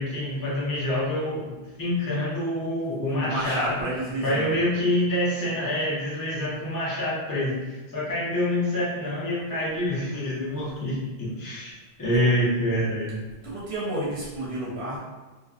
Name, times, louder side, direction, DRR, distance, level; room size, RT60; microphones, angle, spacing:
voice 1, 0.0-3.9 4.2-11.0 11.4-13.2, left 1 dB, 25° left, -8 dB, 0.6 m, -26 dB
voice 2, 3.2-4.6 12.1-12.3 13.4-15.0, right 1 dB, 70° right, -5 dB, 0.7 m, -31 dB
2.4 x 2.2 x 2.3 m, 1.2 s
omnidirectional pair, 1.1 m